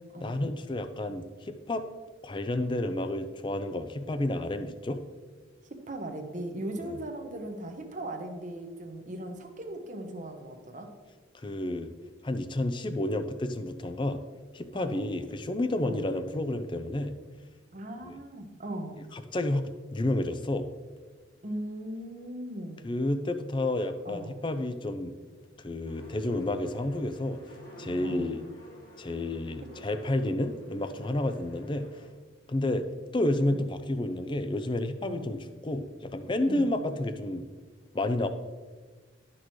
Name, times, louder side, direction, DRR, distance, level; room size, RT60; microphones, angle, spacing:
voice 1, 0.2-1.8 2.2-5.0 6.8-7.0 11.4-11.9 12.2-14.2 14.5-17.2 18.0-18.2 19.1-20.7 22.8-25.2 25.6-27.4 27.8-28.4 29.0-31.9 32.5-32.9 33.1-37.4 37.9-38.3, left 1 dB, 25° left, 9 dB, 0.5 m, -30 dB
voice 2, 5.9-10.9 14.7-15.1 15.8-16.0 17.7-19.0 21.4-22.9 24.0-24.4 28.0-28.4 33.5-33.7 35.0-35.3 36.4-36.7, right 1 dB, 40° right, 5 dB, 0.9 m, -38 dB
sound 1, 25.8-32.1, equal, 45° left, 1.6 m, -50 dB
11.5 x 6.1 x 3.1 m, 1.4 s
head